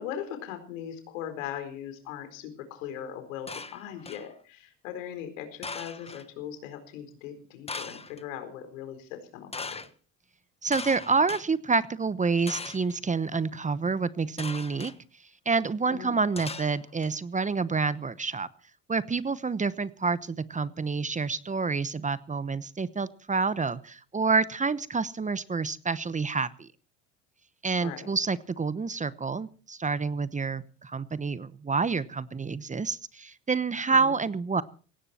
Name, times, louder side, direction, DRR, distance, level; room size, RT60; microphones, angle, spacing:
voice 1, 0.0-9.8 15.9-16.2 27.8-28.1 33.9-34.2, left 9 dB, 85° left, 8 dB, 4.4 m, -39 dB
sound 1, 3.5-4.3 5.6-6.3 7.7-8.2 9.5-9.9 10.7-11.4 12.5-13.0 14.4-15.0 16.4-17.1, left 4 dB, 15° left, 1.4 m, -39 dB
voice 2, 10.6-14.9 15.5-18.5 18.9-26.7 27.6-34.6, right 4 dB, 20° right, 16 dB, 1.0 m, -28 dB
18.0 x 16.5 x 4.4 m, 0.39 s
supercardioid pair, 85°, 38 cm